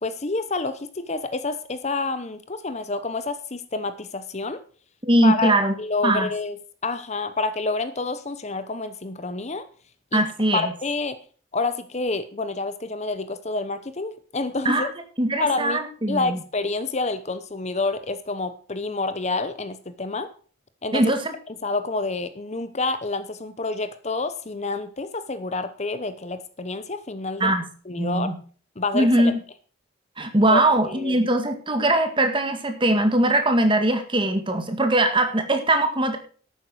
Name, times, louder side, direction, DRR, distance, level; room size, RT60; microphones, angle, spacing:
voice 1, 0.0-4.6 5.2-5.5 5.8-6.6 6.8-9.7 10.1-10.2 10.5-11.2 11.5-14.9 15.4-15.8 16.1-20.3 20.8-21.1 21.5-27.5 27.9-28.3 28.8-29.3 30.5-31.3, left 3 dB, 35° left, 12 dB, 0.8 m, -28 dB
voice 2, 5.0-5.7 6.0-6.3 10.1-10.7 14.7-14.9 15.2-16.4 20.9-21.3 27.4-27.7 28.0-28.4 28.9-29.3 30.2-36.2, right 1 dB, 25° right, 7 dB, 1.8 m, -21 dB
11.5 x 9.1 x 6.3 m, 0.43 s
head